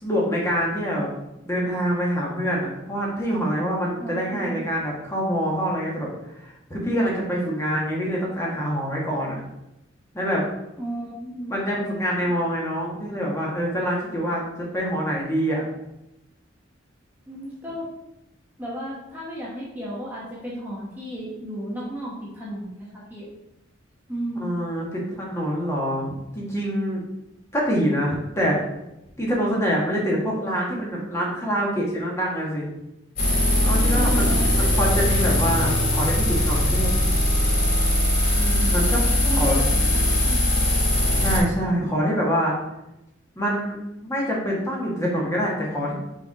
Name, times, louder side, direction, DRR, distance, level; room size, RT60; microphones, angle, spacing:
voice 1, 0.0-1.1 1.4-6.1 6.3-9.4 10.1-10.4 11.5-15.7 24.3-27.0 27.5-28.6 29.2-32.8 33.6-36.9 38.4-39.0 39.3-39.6 41.2-42.6 43.3-45.9, equal, 15° left, -4 dB, 1.5 m, -25 dB
voice 2, 4.0-4.6 10.8-11.5 17.3-17.9 18.6-23.3 24.1-24.5 33.9-34.7 39.1-39.8 40.0-40.7, equal, 10° right, -6 dB, 1.2 m, -33 dB
sound 1, 33.2-41.4, left 1 dB, 45° left, 2.4 m, -20 dB
5.2 x 4.5 x 4.7 m, 0.90 s
head